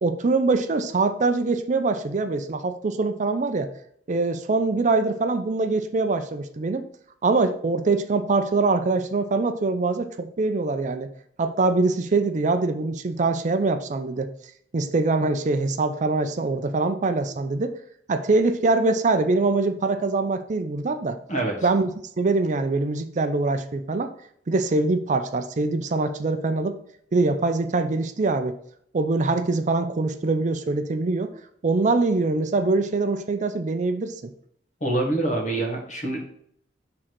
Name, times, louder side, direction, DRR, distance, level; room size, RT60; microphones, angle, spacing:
voice 1, 0.0-3.7 4.1-6.8 7.2-11.1 11.4-14.3 14.7-17.7 18.1-21.2 21.6-21.9 22.2-24.1 24.5-26.8 27.1-28.6 28.9-31.3 31.6-34.3, right 3 dB, 45° right, 8 dB, 0.5 m, -23 dB
voice 2, 34.8-36.3, right 2 dB, 45° left, 1 dB, 1.5 m, -25 dB
6.1 x 3.8 x 4.6 m, 0.67 s
head